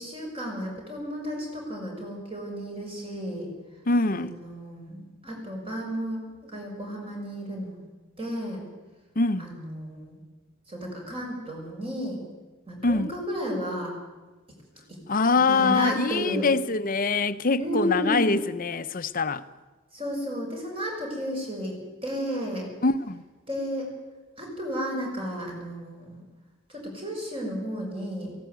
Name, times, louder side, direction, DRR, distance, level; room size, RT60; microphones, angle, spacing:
voice 1, 0.0-3.5 4.1-7.9 8.2-8.6 9.4-10.2 10.7-12.2 12.7-13.9 14.9-15.0 15.5-16.5 17.6-18.4 19.9-21.8 22.0-22.7 23.5-23.9 24.4-26.2 26.7-28.4, equal, 25° right, 6.4 m, -33 dB
voice 2, 3.9-4.3 9.2-9.5 12.8-13.1 15.1-19.4 22.8-23.2, left 3 dB, 40° left, 0.8 m, -24 dB
18.0 x 17.0 x 9.4 m
head